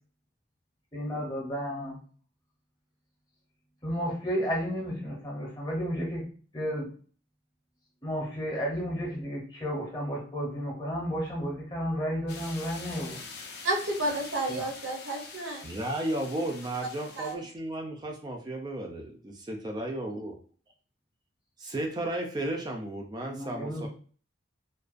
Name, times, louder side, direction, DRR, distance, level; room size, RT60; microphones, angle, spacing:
voice 1, 0.9-2.0 3.8-6.3 6.5-6.9 8.0-13.2 14.5-14.7 23.3-23.9, equal, 20° left, -3 dB, 0.7 m, -32 dB
wind leaf, 12.3-17.3, left 4 dB, 55° left, 0.4 m, -45 dB
voice 2, 13.6-15.7 17.1-17.4, right 1 dB, 70° right, 1 dB, 0.6 m, -31 dB
voice 3, 15.6-20.3 21.6-23.9, right 1 dB, 20° right, 1 dB, 0.3 m, -34 dB
2.4 x 2.2 x 2.4 m, 0.42 s
head